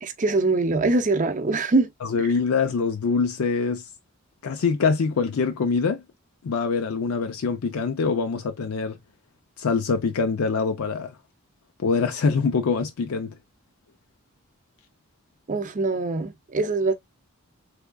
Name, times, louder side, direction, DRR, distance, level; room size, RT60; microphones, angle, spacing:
voice 1, 0.0-1.9 2.2-2.3 15.5-16.9, right 3 dB, 35° right, 0.5 m, -23 dB
voice 2, 2.0-3.8 4.4-6.0 6.4-9.0 9.6-11.1 11.8-13.3, left 5 dB, 75° left, 0.5 m, -24 dB
3.5 x 3.4 x 2.2 m
head